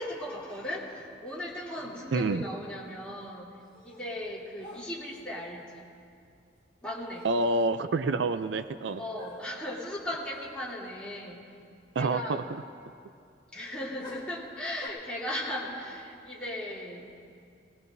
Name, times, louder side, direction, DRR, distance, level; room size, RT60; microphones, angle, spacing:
voice 1, 0.0-3.5 3.8-5.9 6.8-7.3 9.0-11.5 12.0-12.4 13.5-17.1, left 1 dB, 5° left, -8 dB, 3.0 m, -37 dB
voice 2, 2.1-2.5 7.2-9.0 12.0-12.4, right 3 dB, 80° right, 11 dB, 0.4 m, -27 dB
sound 1, 3.6-4.2 4.6-5.4 6.8-6.9 7.1-7.6 8.0-8.1 9.2-9.7 10.3-10.6 10.8-10.9 14.0-14.9, equal, 25° left, 2.1 m, -49 dB
20.5 x 18.5 x 2.7 m, 2.4 s
head